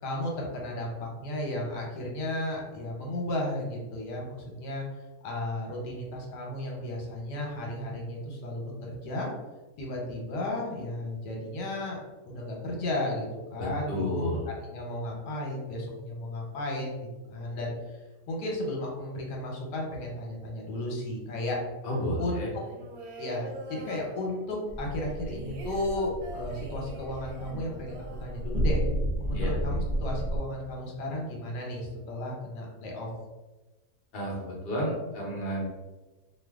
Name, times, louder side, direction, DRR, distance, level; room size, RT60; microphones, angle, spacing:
voice 1, 0.0-4.8 5.2-9.3 9.8-12.0 12.2-14.3 14.7-17.7 18.3-21.6 22.2-22.4 23.2-28.9 29.2-33.1, left 1 dB, 80° left, -1 dB, 1.3 m, -34 dB
voice 2, 13.6-14.5 21.8-22.5 29.3-29.6 34.1-35.7, equal, 45° left, -3 dB, 0.8 m, -31 dB
sound 1, 22.5-24.7 25.0-28.9 29.2-29.3 29.6-30.1, right 2 dB, 70° right, 1.0 m, -42 dB
sound 2, 24.7-30.4, right 1 dB, 45° right, 0.6 m, -32 dB
2.6 x 2.5 x 3.4 m, 1.1 s
omnidirectional pair, 1.8 m